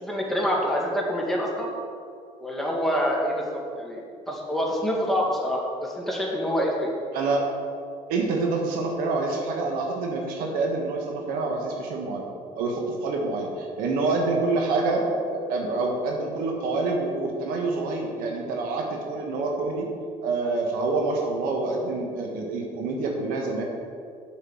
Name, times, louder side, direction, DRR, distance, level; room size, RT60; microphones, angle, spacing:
voice 1, 0.0-1.7 2.4-6.9, equal, ahead, -3 dB, 2.1 m, -26 dB
voice 2, 7.1-7.5 8.1-12.2 12.5-15.0 15.3-19.9 20.2-23.6, right 3 dB, 80° right, 1 dB, 1.5 m, -27 dB
7.4 x 5.8 x 7.3 m, 2.3 s
supercardioid pair, 90°, 15 cm